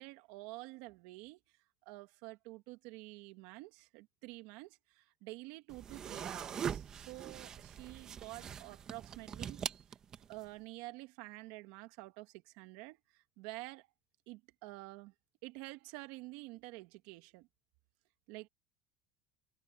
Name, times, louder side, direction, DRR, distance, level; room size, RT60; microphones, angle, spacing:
voice 1, 0.0-1.4 1.9-9.6 10.3-13.9 14.3-15.1 15.4-17.5 18.3-18.5, right 21 dB, 75° right, 1.9 m, -49 dB
sound 1, 5.7-10.5, right 8 dB, 35° right, 1.3 m, -42 dB
supercardioid pair, 125°, 2 cm